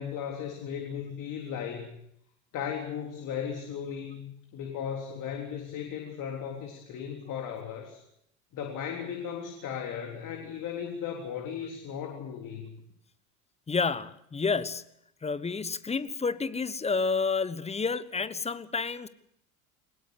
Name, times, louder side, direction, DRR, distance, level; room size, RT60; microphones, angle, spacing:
voice 1, 0.0-1.9 2.5-8.0 8.5-12.8, left 8 dB, 45° left, 2 dB, 3.8 m, -36 dB
voice 2, 13.7-14.8 15.2-19.1, left 4 dB, 15° left, 16 dB, 1.1 m, -30 dB
22.5 x 20.5 x 6.8 m, 0.74 s
figure-of-eight pair, 75°, 43 cm